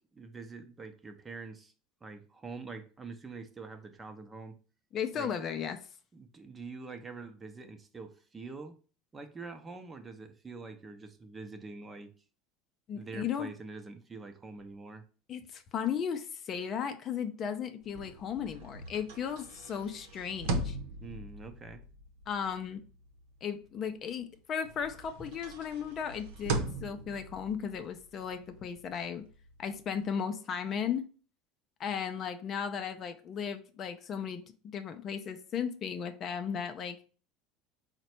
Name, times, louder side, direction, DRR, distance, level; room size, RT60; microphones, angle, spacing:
voice 1, 0.1-1.7 2.0-4.5 5.2-5.3 6.1-8.7 9.1-12.1 12.9-15.0 21.0-21.8, right 4 dB, 20° right, 6 dB, 0.6 m, -45 dB
voice 2, 4.9-5.8 12.9-13.5 15.3-20.8 22.3-22.8 23.4-29.2 29.6-31.0 31.8-34.4 34.7-37.0, left 7 dB, 45° left, 8 dB, 0.5 m, -35 dB
sound 1, 17.8-24.3 24.6-30.0, right 2 dB, 80° right, 0.7 m, -40 dB
4.0 x 2.2 x 4.3 m, 0.38 s
supercardioid pair, 95°, 0 cm